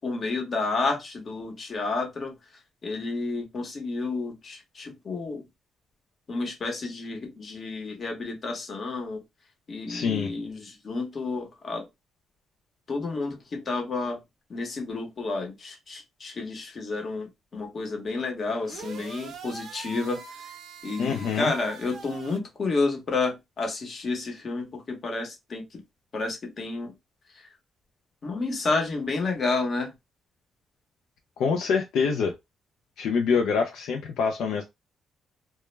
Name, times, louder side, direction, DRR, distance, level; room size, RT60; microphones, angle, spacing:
voice 1, 0.0-2.3 2.8-5.4 6.3-9.2 9.7-11.9 12.9-14.2 14.5-20.2 20.8-25.8 26.1-26.9 28.2-29.9, left 3 dB, 45° left, 0.8 m, -30 dB
voice 2, 9.9-10.3 21.0-21.5 31.4-32.3 33.0-34.6, left 5 dB, 80° left, 0.3 m, -25 dB
sound 1, 18.6-22.4, right 5 dB, 75° right, 0.6 m, -43 dB
2.1 x 2.0 x 3.1 m
cardioid pair, 90°, 0 cm